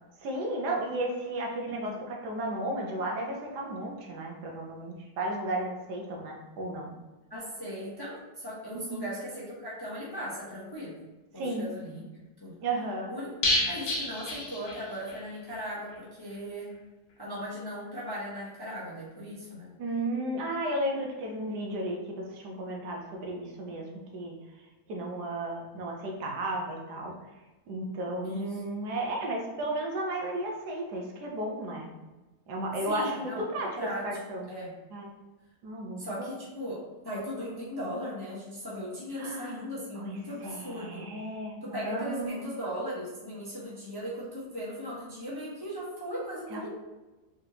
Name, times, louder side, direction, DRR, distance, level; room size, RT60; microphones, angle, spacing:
voice 1, 0.2-6.9 8.7-9.0 11.4-11.7 12.6-13.1 19.8-23.9 24.1-24.4 24.9-27.1 27.7-32.0 32.5-33.7 34.0-34.5 34.9-35.1 35.6-36.3 39.2-42.5 46.5-46.7, right 1 dB, 85° right, 0 dB, 1.4 m, -34 dB
voice 2, 7.3-11.0 11.3-12.0 12.4-12.6 13.1-13.3 13.6-16.7 17.2-19.7 28.2-28.6 32.8-34.0 34.5-34.7 36.0-41.1 41.6-46.7, equal, 20° left, -7 dB, 0.7 m, -38 dB
sound 1, 13.4-15.2 15.5-15.6 15.9-16.0, left 1 dB, 65° left, 1.2 m, -30 dB
3.8 x 3.4 x 2.8 m, 1.1 s
omnidirectional pair, 1.7 m